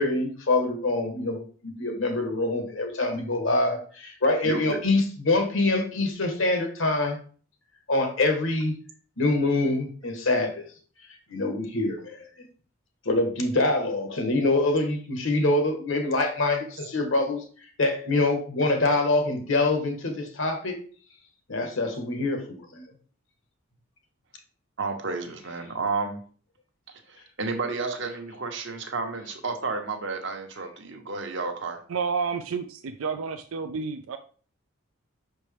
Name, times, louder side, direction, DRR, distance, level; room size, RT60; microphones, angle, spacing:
voice 1, 0.0-7.2 7.9-8.7 9.2-10.6 11.3-12.2 13.0-17.4 17.8-20.8 21.5-22.8, left 2 dB, 65° left, 5 dB, 1.3 m, -25 dB
voice 2, 4.4-4.8 24.8-26.2 27.4-31.8, right 3 dB, 60° right, 4 dB, 1.0 m, -31 dB
voice 3, 31.9-34.2, right 5 dB, 75° right, 7 dB, 0.4 m, -30 dB
6.2 x 4.4 x 3.4 m, 0.42 s
head